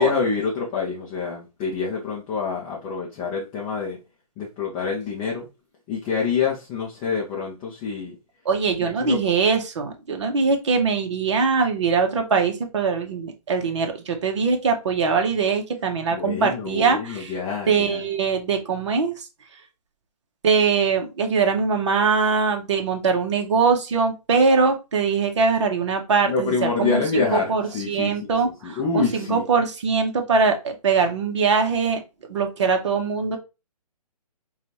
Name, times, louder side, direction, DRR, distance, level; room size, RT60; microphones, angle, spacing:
voice 1, 0.0-4.0 4.4-5.5 5.9-8.2 8.8-9.2 16.1-18.0 26.3-28.3 28.6-29.4, left 5 dB, 10° left, 0.4 m, -26 dB
voice 2, 8.4-17.4 17.7-19.3 20.4-32.0 32.3-33.4, right 5 dB, 50° right, 0.9 m, -22 dB
4.9 x 2.3 x 2.8 m
figure-of-eight pair, 135°, 20 cm